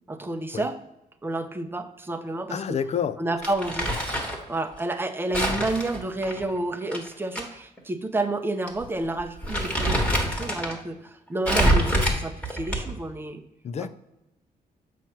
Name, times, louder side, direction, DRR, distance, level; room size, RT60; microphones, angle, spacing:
voice 1, 0.1-0.8 1.2-2.8 3.2-3.9 4.5-13.4, right 2 dB, 15° right, 8 dB, 0.6 m, -30 dB
voice 2, 2.5-3.2 13.6-13.9, left 7 dB, 45° left, 14 dB, 0.4 m, -28 dB
Crumpling crinkling, 3.4-4.4 5.3-7.4 7.8-7.9 8.7-8.8 9.2-10.8 11.4-13.1, right 1 dB, 10° left, 1.4 m, -25 dB
7.8 x 3.0 x 5.8 m, 0.87 s
wide cardioid pair, 145°, 16 cm